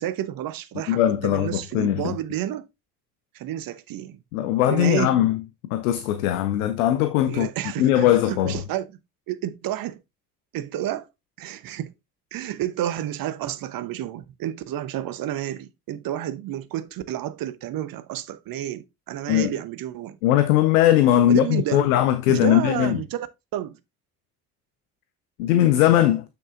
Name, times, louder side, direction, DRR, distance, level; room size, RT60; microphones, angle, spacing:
voice 1, 0.0-2.7 3.3-4.2 4.7-5.2 7.3-8.9 9.3-10.0 10.5-11.1 11.4-11.9 12.3-20.2 21.3-21.8 22.3-23.3 23.5-23.8, right 12 dB, 50° right, 1.0 m, -30 dB
voice 2, 0.9-2.2 4.3-5.4 5.7-7.5 7.8-8.6 19.3-19.5 20.2-23.0 25.4-26.2, left 12 dB, 70° left, 0.7 m, -20 dB
7.7 x 6.6 x 2.5 m
figure-of-eight pair, 45°, 45 cm